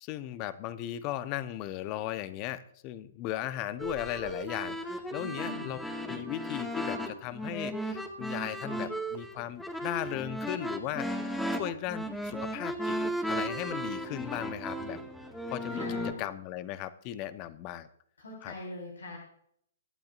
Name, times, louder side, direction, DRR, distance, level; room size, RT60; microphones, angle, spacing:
voice 1, 0.0-11.1 11.5-13.0 13.3-15.0 15.5-17.9 18.4-18.5, left 13 dB, 35° left, 13 dB, 1.0 m, -37 dB
sound 1, 3.8-16.1, equal, 5° left, 2.0 m, -35 dB
voice 2, 5.2-5.7 15.7-16.2 18.2-19.2, left 1 dB, 80° left, -1 dB, 4.6 m, -42 dB
24.5 x 12.0 x 2.6 m, 0.69 s
figure-of-eight pair, 120°, 0 cm